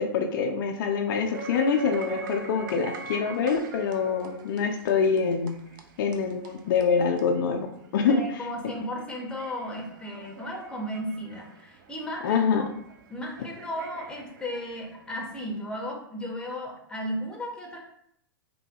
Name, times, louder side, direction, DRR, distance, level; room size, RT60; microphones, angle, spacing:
voice 1, 0.0-5.5 6.0-8.2 8.6-8.7 12.2-12.6, left 6 dB, 65° left, 3 dB, 0.4 m, -25 dB
sound 1, 1.3-15.6, right 4 dB, 60° right, 0.4 m, -42 dB
voice 2, 8.0-12.4 13.1-17.8, equal, 5° left, -1 dB, 0.7 m, -35 dB
3.1 x 2.2 x 2.8 m, 0.72 s
hypercardioid pair, 115°, 12 cm